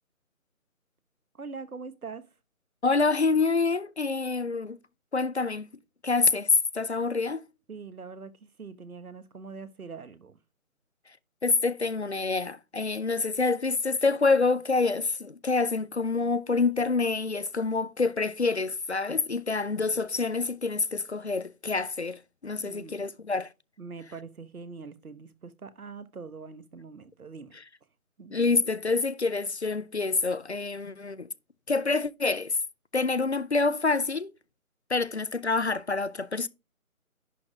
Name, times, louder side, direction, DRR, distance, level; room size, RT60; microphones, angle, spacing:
voice 1, 1.3-2.3 7.7-10.4 22.6-22.9 23.8-27.6 28.2-28.3, right 4 dB, 80° right, 1.2 m, -43 dB
voice 2, 2.8-4.8 5.1-5.7 6.0-7.4 11.4-23.5 28.3-31.3 31.7-32.6 32.9-34.3 34.9-36.5, left 4 dB, 50° left, 0.4 m, -27 dB
11.0 x 4.2 x 4.8 m
figure-of-eight pair, 170°, 43 cm